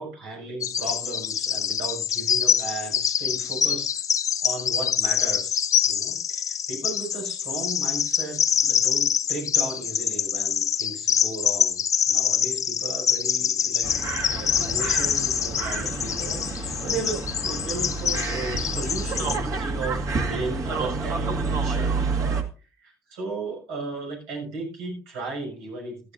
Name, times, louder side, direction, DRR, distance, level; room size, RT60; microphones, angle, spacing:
voice 1, 0.0-3.9 4.4-11.8 12.1-13.9 14.3-22.4 22.8-26.1, right 3 dB, 90° right, 0 dB, 6.5 m, -35 dB
Bird vocalization bird call bird song, 0.6-19.4, left 8 dB, 50° left, 1.0 m, -25 dB
sound 1, 13.8-22.4, right 3 dB, 50° right, 2.0 m, -29 dB
16.0 x 12.5 x 2.6 m, 0.35 s
supercardioid pair, 80°, 8 cm